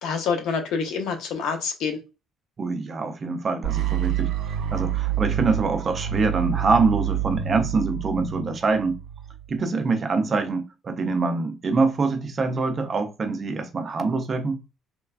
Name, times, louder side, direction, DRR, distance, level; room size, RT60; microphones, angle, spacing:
voice 1, 0.0-2.0, left 5 dB, 75° left, 0.6 m, -27 dB
voice 2, 2.6-9.0 9.5-14.6, right 4 dB, 30° right, 0.4 m, -25 dB
sound 1, 3.6-9.6, right 10 dB, 85° right, 0.5 m, -28 dB
3.2 x 2.2 x 2.3 m
cardioid pair, 150°, 0 cm